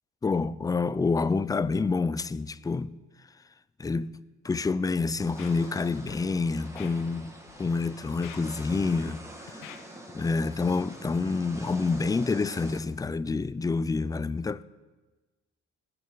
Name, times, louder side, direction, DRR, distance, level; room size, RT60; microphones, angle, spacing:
voice 1, 0.2-2.9 3.8-4.2 4.4-9.2 9.5-9.6 10.1-14.6, left 4 dB, 15° left, 0.3 m, -28 dB
Scratching (performance technique), 5.2-5.8 6.1-6.2 6.8-6.9 7.5-7.7 8.1-9.1 9.5-9.8 10.3-10.4, left 10 dB, 90° left, 1.1 m, -45 dB
sound 1, 5.2-12.8, right 1 dB, 10° right, 1.9 m, -46 dB
20.0 x 9.0 x 3.9 m
cardioid pair, 90°, 30 cm